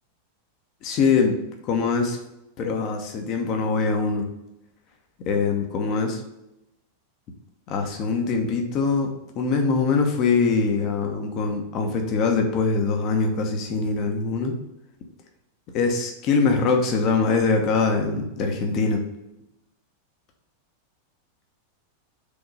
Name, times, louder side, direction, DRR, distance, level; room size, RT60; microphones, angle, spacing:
voice 1, 0.8-2.2 2.6-4.3 5.2-6.2 7.7-14.6 15.7-19.0, left 4 dB, 40° left, 4 dB, 1.1 m, -23 dB
5.2 x 3.7 x 5.1 m, 0.91 s
figure-of-eight pair, 90°, 0 cm